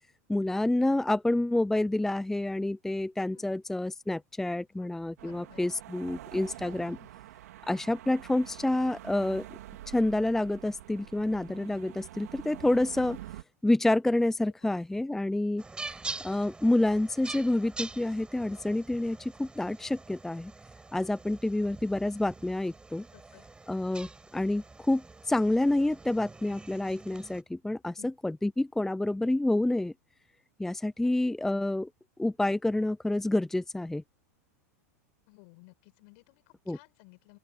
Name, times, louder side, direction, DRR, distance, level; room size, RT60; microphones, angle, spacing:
voice 1, 0.3-7.0 7.7-9.5 9.9-13.2 13.6-20.5 20.9-23.0 23.7-24.1 24.3-29.9 30.6-31.9 32.2-34.0 36.7-36.8, left 1 dB, 5° left, 0.5 m, -28 dB
voice 2, 5.2-5.7 7.0-7.1 14.6-14.8 15.1-15.2 23.1-23.5 23.8-24.0 28.0-28.1 31.0-31.1 35.3-37.4, left 29 dB, 55° left, 7.2 m, -56 dB
sound 1, 5.2-13.4, right 14 dB, 75° right, 4.0 m, -46 dB
sound 2, 15.6-27.4, right 3 dB, 10° right, 4.8 m, -45 dB
open air
hypercardioid pair, 110°, 9 cm